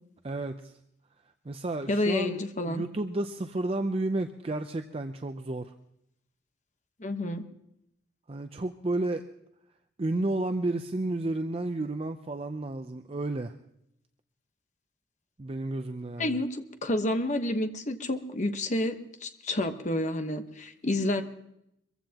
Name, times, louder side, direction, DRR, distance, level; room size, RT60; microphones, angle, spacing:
voice 1, 0.2-0.7 1.4-5.7 8.3-9.2 10.0-13.5 15.4-16.4, right 2 dB, 35° right, 7 dB, 0.6 m, -32 dB
voice 2, 1.9-2.8 7.0-7.4 16.2-21.2, left 1 dB, 40° left, 7 dB, 1.1 m, -29 dB
23.5 x 15.0 x 2.9 m, 0.78 s
head